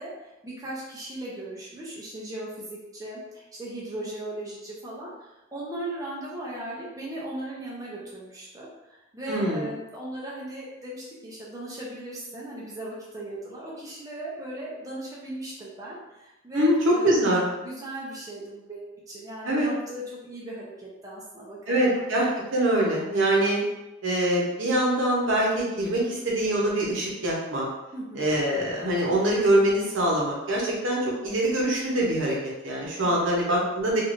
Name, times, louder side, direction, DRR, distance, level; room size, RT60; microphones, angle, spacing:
voice 1, 0.0-17.2 17.6-22.0 27.9-28.3 33.0-33.3, right 1 dB, 15° right, -6 dB, 0.5 m, -38 dB
voice 2, 9.3-9.7 16.5-16.8 17.0-17.4 19.5-19.7 21.7-22.2 22.5-23.6 24.0-27.7 28.1-34.0, right 1 dB, 70° right, -4 dB, 0.8 m, -24 dB
3.1 x 2.5 x 2.5 m, 0.97 s
head